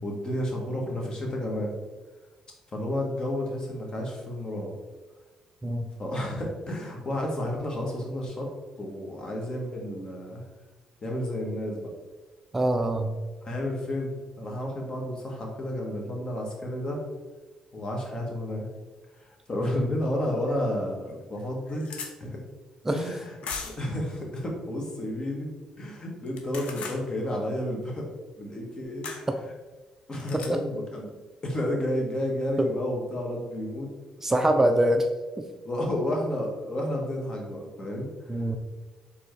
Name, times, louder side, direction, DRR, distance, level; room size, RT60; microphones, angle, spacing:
voice 1, 0.0-1.7 2.7-4.7 6.0-8.5 8.8-10.4 11.0-11.8 13.4-17.0 17.7-18.7 19.1-21.9 22.2-22.4 22.9-23.4 23.6-28.1 28.4-29.1 30.1-31.1 31.4-33.9 34.4-34.7 35.6-38.4, left 1 dB, 40° left, 0 dB, 1.3 m, -31 dB
voice 2, 12.5-13.1 19.6-19.8 22.9-23.0 30.5-30.6 32.6-32.7 34.2-35.0 35.4-35.5 38.3-38.6, right 1 dB, 20° right, 5 dB, 0.4 m, -24 dB
sound 1, 20.5-20.6 21.1-21.2 21.4-22.1 23.4-23.9 26.3-27.0 29.0-29.2 30.2-30.5, left 5 dB, 70° left, 0.6 m, -37 dB
4.3 x 3.4 x 3.2 m, 1.2 s
supercardioid pair, 65°, 2 cm